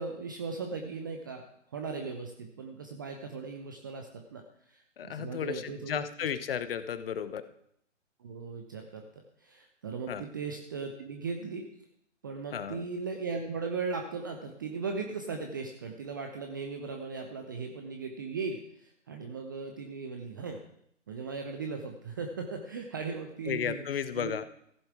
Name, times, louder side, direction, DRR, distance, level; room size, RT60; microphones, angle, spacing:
voice 1, 0.0-6.1 8.2-11.7 12.2-20.6 21.1-24.4, right 4 dB, 15° right, 4 dB, 0.4 m, -38 dB
voice 2, 5.0-7.5 10.1-10.3 12.5-12.9 23.5-24.4, left 8 dB, 50° left, 13 dB, 0.9 m, -34 dB
15.0 x 7.1 x 4.7 m, 0.72 s
figure-of-eight pair, 135°, 37 cm